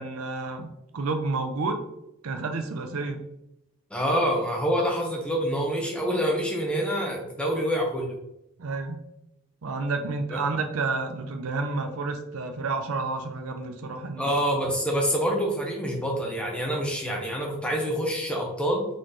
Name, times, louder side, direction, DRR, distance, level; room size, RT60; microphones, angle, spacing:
voice 1, 0.0-1.8 2.2-3.3 8.6-9.0 9.6-14.3, right 3 dB, 70° right, 6 dB, 0.6 m, -30 dB
voice 2, 3.9-8.2 10.3-10.4 14.2-18.9, equal, 5° left, -1 dB, 0.8 m, -26 dB
4.1 x 3.1 x 3.9 m, 0.83 s
head